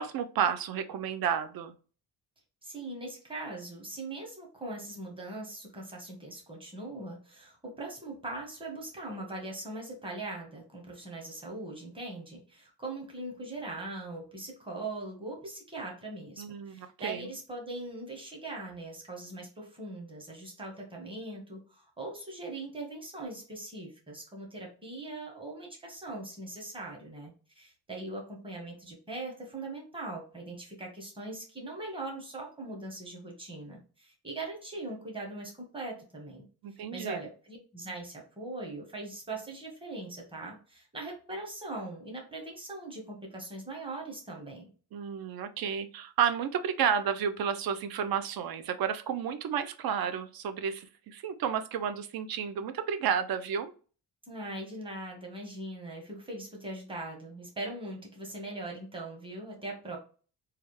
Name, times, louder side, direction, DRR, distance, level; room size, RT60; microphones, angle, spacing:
voice 1, 0.0-1.7 16.4-17.3 36.6-37.2 44.9-53.7, right 8 dB, 60° right, 10 dB, 0.5 m, -31 dB
voice 2, 2.6-36.4 36.9-44.7 54.2-60.0, right 2 dB, 15° right, -1 dB, 0.9 m, -41 dB
3.2 x 2.3 x 3.0 m, 0.38 s
wide cardioid pair, 160°, 40 cm